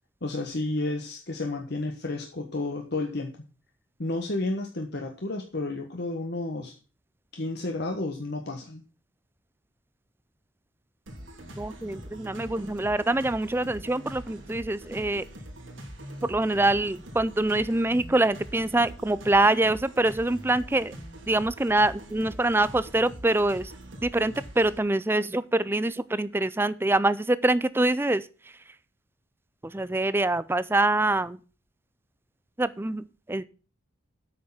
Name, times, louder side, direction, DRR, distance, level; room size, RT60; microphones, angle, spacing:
voice 1, 0.2-3.4 4.0-6.7 7.3-8.8, left 2 dB, 55° left, 2 dB, 1.4 m, -31 dB
sound 1, 11.1-24.8, right 1 dB, 70° right, 2.9 m, -43 dB
voice 2, 11.6-15.2 16.2-20.9 21.3-23.7 24.0-28.2 29.6-31.4 32.6-33.0 33.3-33.4, right 2 dB, 10° right, 16 dB, 0.4 m, -25 dB
8.6 x 6.5 x 7.3 m, 0.36 s
head